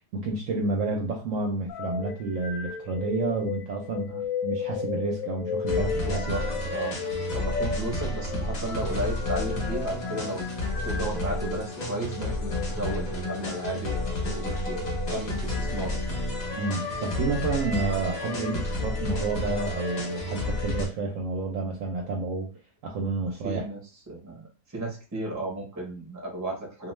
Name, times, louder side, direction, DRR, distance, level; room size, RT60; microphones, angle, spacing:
voice 1, 0.1-4.1 4.4-6.5 16.6-22.5 22.8-23.6, right 3 dB, 65° right, 1 dB, 0.8 m, -30 dB
sound 1, 1.7-11.6 12.4-12.7 14.7-15.0 15.8-16.3 16.9-17.2 17.9-18.4 18.9-20.0, left 5 dB, 70° left, 0.8 m, -35 dB
sound 2, 5.7-20.9, left 2 dB, 40° left, 0.6 m, -31 dB
voice 2, 6.0-6.9 7.3-10.5 10.8-16.0 23.3-23.8 24.1-26.9, right 2 dB, 15° right, -1 dB, 0.6 m, -34 dB
2.5 x 2.3 x 3.0 m, 0.33 s
omnidirectional pair, 1.7 m